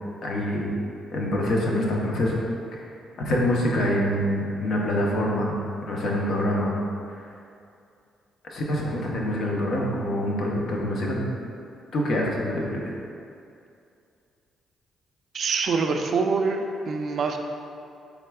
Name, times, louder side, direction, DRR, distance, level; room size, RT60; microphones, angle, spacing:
voice 1, 0.2-0.7 1.1-2.4 2.7-2.8 3.2-5.5 5.9-6.7 8.4-11.3 11.9-12.8, left 1 dB, 60° left, -2 dB, 0.7 m, -25 dB
voice 2, 15.3-17.4, right 4 dB, 55° right, 4 dB, 0.3 m, -25 dB
4.3 x 3.5 x 2.2 m, 2.5 s
cardioid pair, 90°, 0 cm